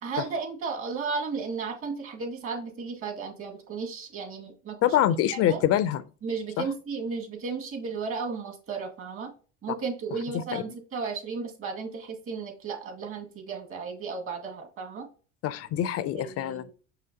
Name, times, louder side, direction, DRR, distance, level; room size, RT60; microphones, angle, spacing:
voice 1, 0.0-4.9 5.3-5.6 6.2-9.3 9.6-15.1 16.1-16.7, right 5 dB, 45° right, 2.1 m, -34 dB
voice 2, 4.8-6.0 6.6-6.7 10.3-10.6 15.4-16.6, left 11 dB, 50° left, 0.5 m, -25 dB
5.9 x 5.7 x 2.8 m
supercardioid pair, 110°, 31 cm